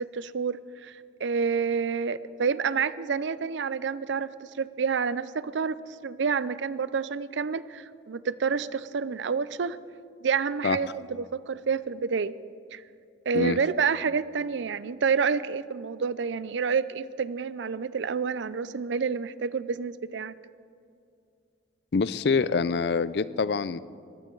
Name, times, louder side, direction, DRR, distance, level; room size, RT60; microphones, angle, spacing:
voice 1, 0.0-5.7 6.0-9.8 10.2-12.3 12.7-12.8 13.3-20.4, right 5 dB, 75° right, 17 dB, 0.5 m, -28 dB
voice 2, 21.9-23.8, left 5 dB, 60° left, 17 dB, 0.4 m, -25 dB
21.5 x 15.5 x 3.9 m, 2.4 s
head